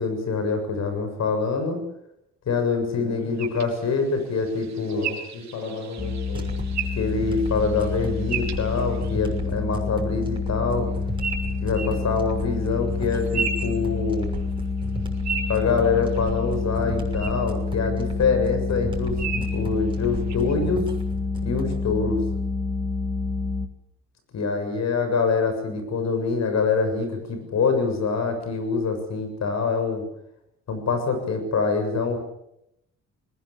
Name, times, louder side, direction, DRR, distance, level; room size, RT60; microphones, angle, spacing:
voice 1, 0.0-1.8 2.5-5.1 7.0-10.9 11.6-14.3 15.5-20.9 21.4-22.2 24.3-30.0 30.7-32.2, left 4 dB, 60° left, 7 dB, 7.3 m, -25 dB
voice 2, 2.9-3.3 4.8-6.5 9.8-10.1 11.8-12.1, left 3 dB, 90° left, 1 dB, 6.5 m, -36 dB
sound 1, 3.4-9.3 11.2-12.0 13.0-14.4 14.8-16.5 17.1-17.3 17.8-17.9 19.2-19.6 20.3-20.5, right 6 dB, 65° right, 4.4 m, -34 dB
sound 2, 6.0-23.7, left 4 dB, 15° left, 2.8 m, -28 dB
sound 3, 6.3-21.8, right 2 dB, 15° right, 6.4 m, -37 dB
20.5 x 20.5 x 8.5 m, 0.82 s
cardioid pair, 90°, 30 cm